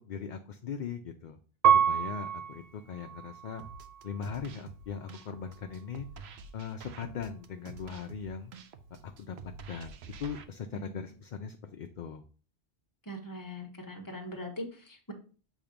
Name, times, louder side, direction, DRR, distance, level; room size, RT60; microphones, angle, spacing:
voice 1, 0.0-1.4 1.8-3.6 4.0-8.5 9.0-9.4 9.7-12.2, left 6 dB, 55° left, 6 dB, 0.6 m, -40 dB
Piano, 1.6-4.4 5.0-5.7, right 8 dB, 55° right, 0.4 m, -29 dB
sound 1, 3.6-10.4, right 5 dB, 80° right, 0.9 m, -48 dB
voice 2, 13.1-15.1, equal, 20° left, 2 dB, 1.2 m, -41 dB
7.3 x 2.8 x 5.1 m, 0.39 s
omnidirectional pair, 1.1 m